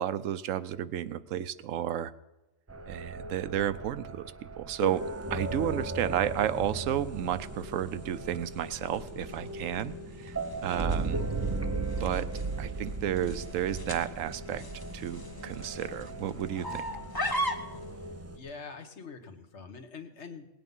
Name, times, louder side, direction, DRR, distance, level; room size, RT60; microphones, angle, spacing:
voice 1, 0.0-2.1 2.9-5.1 5.3-11.2 11.8-14.6 14.9-16.8, right 10 dB, 90° right, 14 dB, 1.0 m, -32 dB
sound 1, 2.7-18.4, right 3 dB, 20° right, 0.4 m, -37 dB
sound 2, 6.4-17.9, equal, 20° left, 0.9 m, -40 dB
voice 2, 17.9-20.5, left 5 dB, 65° left, 7 dB, 1.5 m, -45 dB
18.0 x 9.0 x 5.4 m, 1.0 s
omnidirectional pair, 1.3 m